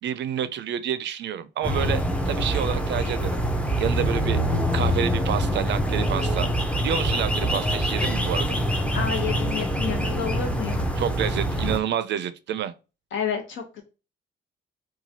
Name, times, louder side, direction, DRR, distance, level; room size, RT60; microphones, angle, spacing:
voice 1, 0.0-3.4 3.8-4.4 4.7-6.5 6.8-8.6 11.0-12.7, right 9 dB, 65° right, 0.4 m, -28 dB
sound 1, 1.6-11.8, equal, 5° left, 0.5 m, -25 dB
voice 2, 8.9-10.8 13.1-13.8, left 7 dB, 75° left, 1.0 m, -30 dB
3.0 x 2.3 x 2.7 m
cardioid pair, 90°, 20 cm